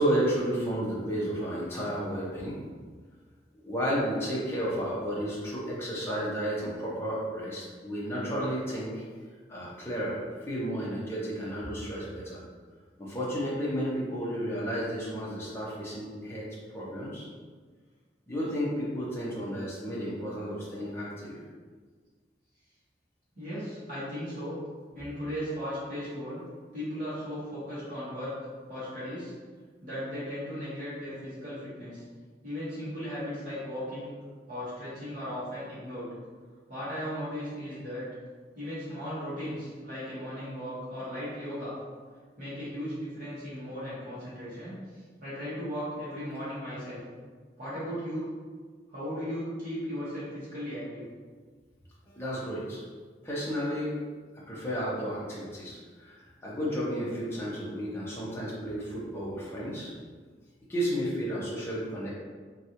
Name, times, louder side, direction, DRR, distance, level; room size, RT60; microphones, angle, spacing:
voice 1, 0.0-2.6 3.6-9.0 9.5-12.4 13.0-16.4 16.7-17.3 18.3-21.4 52.1-52.8 53.2-53.9 54.5-59.9 60.7-62.1, equal, 15° left, -7 dB, 0.7 m, -32 dB
voice 2, 23.4-24.6 24.9-26.4 26.7-28.3 28.7-29.3 29.8-32.0 32.4-34.1 34.5-36.1 36.7-38.0 38.6-41.7 42.4-44.8 45.2-47.0 47.6-48.3 48.9-51.0, equal, 50° right, -12 dB, 1.3 m, -36 dB
3.2 x 2.5 x 2.9 m, 1.5 s
head